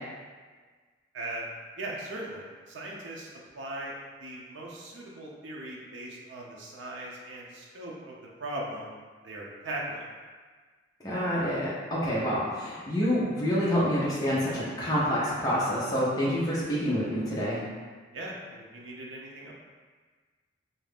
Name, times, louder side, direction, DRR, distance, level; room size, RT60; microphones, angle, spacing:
voice 1, 1.1-1.5 1.8-3.9 4.2-8.1 8.4-8.9 9.2-10.1 18.1-19.5, right 1 dB, 75° right, -3 dB, 0.6 m, -39 dB
voice 2, 11.0-17.6, equal, 20° left, -8 dB, 0.5 m, -27 dB
2.7 x 2.3 x 3.4 m, 1.5 s
head